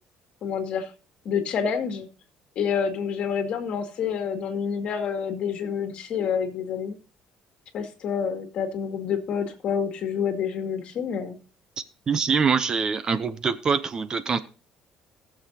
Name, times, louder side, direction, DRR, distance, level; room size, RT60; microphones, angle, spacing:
voice 1, 0.4-0.9 1.3-2.1 2.6-7.0 7.7-11.4, left 7 dB, 55° left, 5 dB, 2.1 m, -28 dB
voice 2, 12.1-14.4, right 5 dB, 30° right, 13 dB, 0.7 m, -24 dB
18.5 x 7.1 x 2.8 m, 0.36 s
cardioid pair, 140°, 2 cm